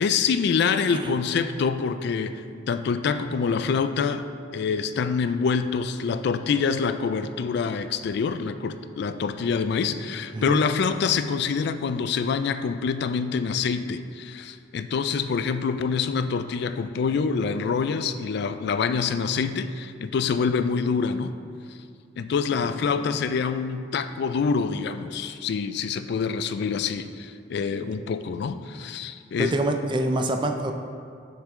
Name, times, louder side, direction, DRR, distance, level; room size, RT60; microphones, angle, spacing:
voice 1, 0.0-4.3 4.5-21.3 22.2-29.6, left 5 dB, 60° left, 11 dB, 0.3 m, -26 dB
voice 2, 10.3-10.6 27.8-27.9 29.4-30.7, right 1 dB, 25° right, 5 dB, 0.4 m, -26 dB
6.5 x 6.5 x 3.6 m, 2.2 s
head